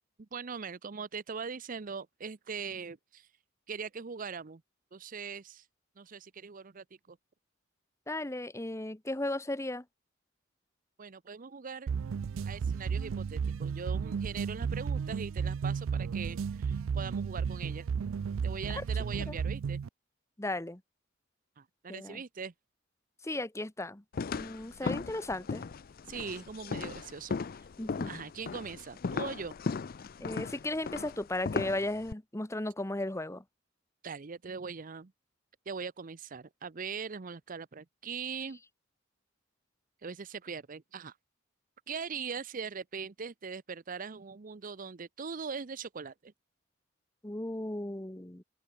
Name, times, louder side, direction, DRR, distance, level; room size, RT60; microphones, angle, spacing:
voice 1, 0.2-3.3 3.7-4.6 4.9-5.7 6.0-7.2 11.0-12.0 12.4-17.9 18.4-19.8 21.6-22.5 24.8-25.0 26.1-27.7 28.1-29.5 34.0-35.1 35.7-38.6 40.0-41.2 41.9-46.3, right 5 dB, 45° right, 0.6 m, -41 dB
voice 2, 8.1-9.8 18.7-18.8 19.3-19.4 20.4-20.8 21.9-22.2 23.2-24.0 24.3-25.6 27.8-28.1 30.2-33.4 47.2-48.4, left 1 dB, 15° left, 1.1 m, -35 dB
sound 1, 11.9-19.9, right 6 dB, 80° right, 0.4 m, -33 dB
sound 2, 24.1-32.1, left 4 dB, 45° left, 0.5 m, -37 dB
open air
head